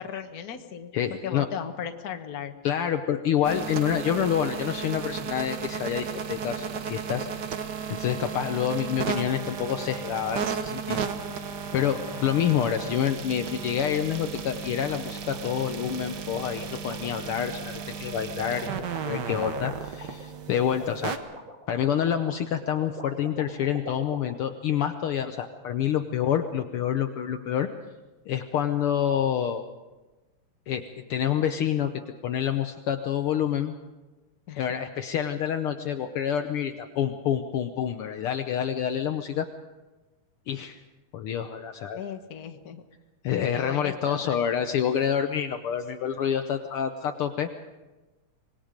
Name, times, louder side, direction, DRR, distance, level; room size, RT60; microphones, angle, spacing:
voice 1, 0.0-2.5 8.3-8.4 12.1-12.4 34.5-34.8 41.9-42.8 43.5-44.4, left 8 dB, 55° left, 6 dB, 1.0 m, -37 dB
voice 2, 0.9-1.5 2.6-7.3 7.9-11.1 11.7-21.1 21.7-27.7 28.3-29.6 30.7-33.7 34.6-39.4 40.5-40.8 41.1-42.0 43.2-47.5, left 9 dB, 85° left, 7 dB, 1.2 m, -27 dB
sound 1, 3.4-21.2, right 6 dB, 80° right, 0.9 m, -34 dB
sound 2, 15.2-24.3, right 1 dB, 20° right, 1.9 m, -43 dB
25.5 x 20.5 x 5.1 m, 1.2 s
omnidirectional pair, 3.5 m